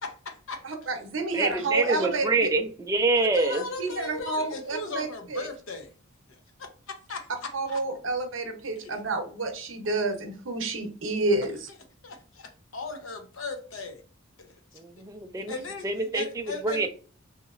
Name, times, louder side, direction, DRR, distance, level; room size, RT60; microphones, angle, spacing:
voice 1, 0.0-1.0 3.2-5.9 6.3-7.8 8.8-9.0 12.0-14.0 14.4-15.1 15.5-16.9, left 3 dB, 80° left, 6 dB, 0.7 m, -38 dB
voice 2, 0.6-2.5 3.8-5.4 7.5-11.5, right 3 dB, 70° right, 5 dB, 0.7 m, -29 dB
voice 3, 1.3-3.6 14.7-15.5 15.8-16.9, right 3 dB, 15° right, 5 dB, 0.3 m, -26 dB
3.0 x 2.8 x 2.4 m, 0.39 s
head